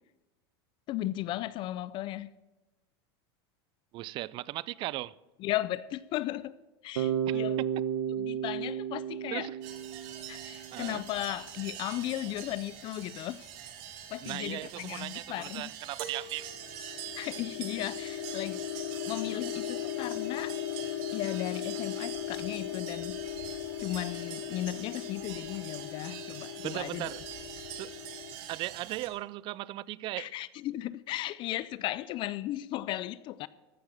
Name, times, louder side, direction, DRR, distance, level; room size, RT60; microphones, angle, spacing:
voice 1, 0.9-2.3 5.4-6.6 6.8-7.6 8.2-9.5 10.3-13.5 14.1-15.7 17.1-18.7 19.1-20.6 21.1-23.2 23.8-27.1 30.2-33.5, left 14 dB, 40° left, 0.4 m, -36 dB
voice 2, 3.9-5.1 7.3-7.4 9.3-9.6 10.7-11.0 14.2-16.5 26.6-27.2 27.7-28.0 28.5-30.3, right 17 dB, 40° right, 0.4 m, -37 dB
Bass guitar, 7.0-10.9, right 9 dB, 90° right, 0.9 m, -33 dB
sound 1, 9.6-29.1, right 9 dB, 60° right, 2.2 m, -44 dB
sound 2, 16.4-28.3, left 12 dB, 75° left, 1.5 m, -38 dB
14.5 x 6.4 x 8.9 m
supercardioid pair, 135°, 13 cm